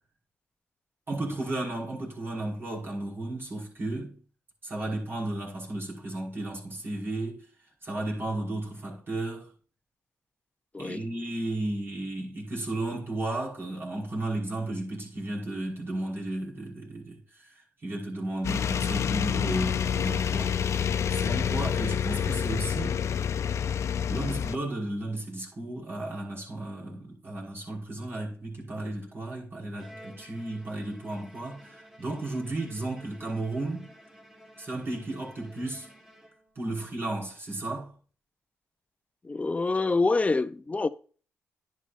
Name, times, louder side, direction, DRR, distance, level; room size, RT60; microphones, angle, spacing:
voice 1, 1.1-4.2 4.6-7.5 7.8-9.5 10.8-20.8 21.1-23.1 24.1-33.9 34.6-35.9 36.6-37.9, right 2 dB, 45° right, 5.6 m, -34 dB
sound 1, 18.4-24.6, left 8 dB, 65° left, 0.6 m, -28 dB
Bowed string instrument, 29.8-36.7, equal, 10° right, 2.5 m, -53 dB
voice 2, 39.2-40.9, left 3 dB, 25° left, 0.8 m, -26 dB
10.5 x 10.5 x 2.6 m
cardioid pair, 65°, 5 cm